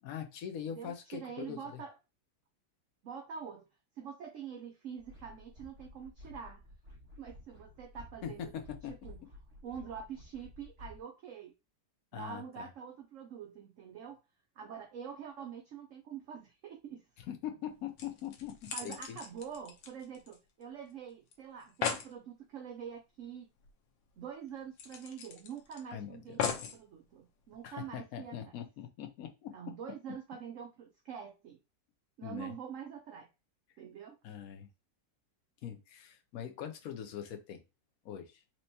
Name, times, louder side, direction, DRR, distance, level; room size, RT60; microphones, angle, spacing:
voice 1, 0.0-1.8 8.2-8.9 12.1-12.7 17.3-19.2 25.9-26.4 27.6-29.5 32.2-32.5 34.2-34.7 35.6-37.6 38.0-38.4, left 9 dB, 60° left, 5 dB, 1.1 m, -42 dB
voice 2, 0.6-2.0 3.0-3.7 4.0-6.7 7.2-8.5 8.9-9.2 9.6-11.5 12.1-14.2 14.6-17.1 18.7-23.5 24.2-26.4 26.7-28.5 29.5-31.6 32.2-33.3 33.8-34.2, right 7 dB, 65° right, 3 dB, 0.8 m, -45 dB
sound 1, 5.0-11.0, left 1 dB, 35° right, 1.9 m, -53 dB
sound 2, 17.6-17.7 18.0-20.6 20.9-21.0 21.3-21.4 21.6-22.1 23.6-23.7 24.1-24.2 24.8-25.8 26.4-26.8 27.5-27.6, left 7 dB, 85° left, 1.5 m, -38 dB
4.4 x 3.1 x 2.7 m, 0.26 s
omnidirectional pair, 1.9 m